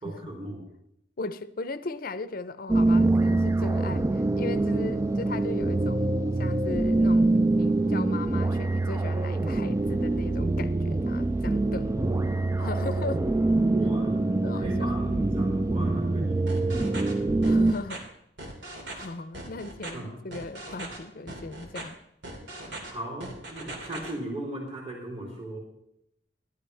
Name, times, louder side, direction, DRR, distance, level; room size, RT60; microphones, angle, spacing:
voice 1, 0.0-0.6 11.9-12.2 13.6-17.6 19.9-20.1 22.6-25.6, right 1 dB, 35° right, 3.4 m, -37 dB
voice 2, 1.2-12.2 12.6-13.3 14.4-14.9 17.4-18.0 19.0-22.0 22.4-22.5, left 3 dB, 55° left, 0.6 m, -38 dB
sound 1, 2.7-17.7, right 2 dB, 15° right, 0.3 m, -25 dB
sound 2, 16.5-17.1 17.4-18.0 18.4-19.1 19.3-19.9 20.3-21.0 21.3-21.8 22.2-22.9 23.2-24.1, right 2 dB, 85° right, 2.8 m, -39 dB
15.0 x 12.0 x 3.4 m
head